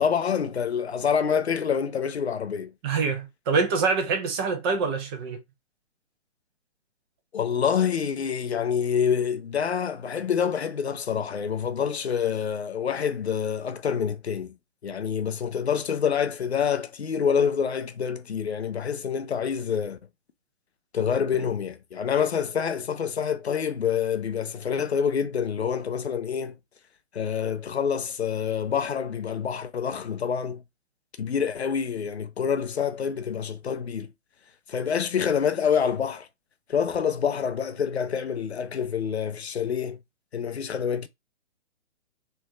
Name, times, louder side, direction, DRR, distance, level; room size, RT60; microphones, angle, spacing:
voice 1, 0.0-2.7 7.3-14.5 14.8-20.0 20.9-26.6 27.1-30.6 31.2-34.1 34.7-36.3 36.7-40.0 40.3-41.1, left 7 dB, 75° left, 0.6 m, -27 dB
voice 2, 2.8-5.4, right 4 dB, 25° right, 0.7 m, -25 dB
3.3 x 2.6 x 3.0 m
figure-of-eight pair, 125°, 33 cm